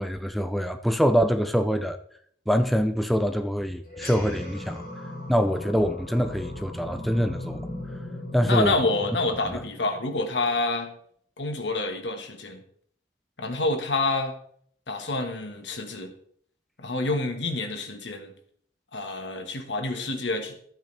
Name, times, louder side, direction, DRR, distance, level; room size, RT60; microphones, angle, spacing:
voice 1, 0.0-2.0 2.5-4.8 5.3-7.6 8.3-8.8 9.5-9.6, equal, ahead, 0.4 m, -24 dB
sound 1, 3.8-10.6, left 1 dB, 50° left, 4.3 m, -38 dB
voice 2, 8.4-10.9 11.4-12.6 13.4-14.3 14.9-16.1 16.8-18.3 18.9-20.7, left 2 dB, 85° left, 1.6 m, -28 dB
13.0 x 9.0 x 3.4 m
head